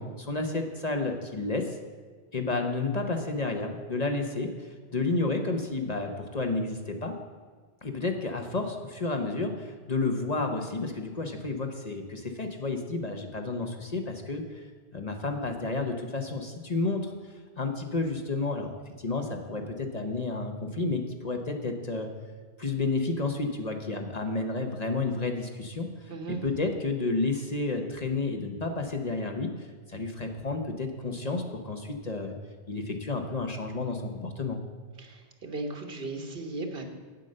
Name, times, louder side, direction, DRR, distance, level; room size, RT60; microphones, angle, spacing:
voice 1, 0.0-1.8 2.3-7.1 7.8-14.6 14.9-17.1 17.6-22.1 22.6-32.3 32.7-34.6, left 3 dB, 40° left, 4 dB, 0.9 m, -31 dB
voice 2, 26.1-26.5 35.0-36.8, right 2 dB, 65° right, 4 dB, 1.5 m, -36 dB
9.1 x 7.7 x 6.5 m, 1.5 s
omnidirectional pair, 1.0 m